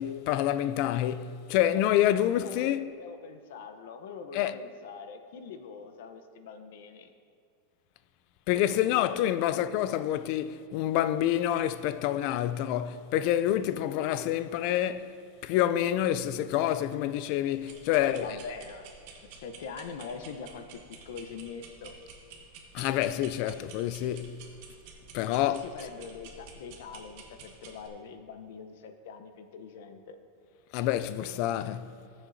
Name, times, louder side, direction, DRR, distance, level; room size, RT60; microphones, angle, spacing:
voice 1, 0.0-2.9 4.3-4.5 8.5-15.2 15.4-18.3 22.7-24.4 25.1-25.6 30.7-31.9, left 12 dB, 40° left, 0.3 m, -27 dB
voice 2, 2.4-7.1 9.5-9.6 17.9-18.9 19.3-22.0 25.4-30.2, left 5 dB, 60° left, 0.8 m, -43 dB
sound 1, 17.5-27.9, right 4 dB, 45° right, 1.2 m, -51 dB
19.5 x 7.2 x 2.7 m
supercardioid pair, 175°, 0 cm